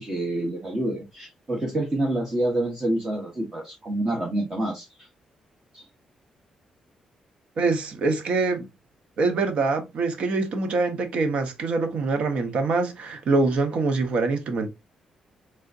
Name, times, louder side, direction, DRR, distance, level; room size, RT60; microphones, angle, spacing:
voice 1, 0.0-5.1 5.7-5.8, right 1 dB, 25° right, 1.0 m, -27 dB
voice 2, 7.6-8.7 9.2-14.7, right 3 dB, 60° right, 0.8 m, -24 dB
3.6 x 3.4 x 2.5 m
cardioid pair, 130°, 2 cm